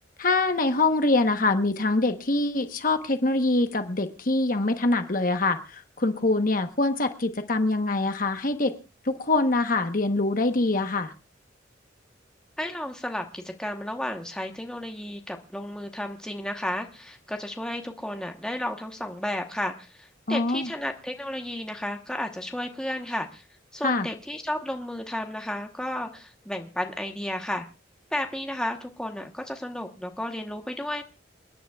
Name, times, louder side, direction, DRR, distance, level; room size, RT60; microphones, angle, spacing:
voice 1, 0.2-8.7 9.0-11.1 20.3-20.7 23.8-24.1, left 2 dB, 45° left, 7 dB, 1.0 m, -24 dB
voice 2, 12.6-23.4 23.7-27.7 28.1-31.0, left 1 dB, 5° left, 4 dB, 1.0 m, -33 dB
28.5 x 10.0 x 2.3 m, 0.30 s
head